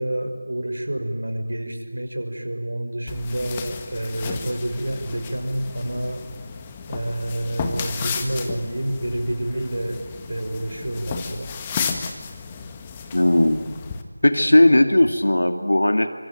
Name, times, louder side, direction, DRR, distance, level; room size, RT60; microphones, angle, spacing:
voice 1, 0.0-6.2 6.9-10.0 10.3-11.5, right 1 dB, 75° right, 5 dB, 5.7 m, -28 dB
sound 1, 3.1-14.0, left 5 dB, 15° left, 1.6 m, -33 dB
voice 2, 13.1-13.6 14.2-16.1, left 1 dB, 80° left, 8 dB, 2.3 m, -17 dB
25.5 x 25.5 x 9.3 m, 1.3 s
figure-of-eight pair, 170°, 0 cm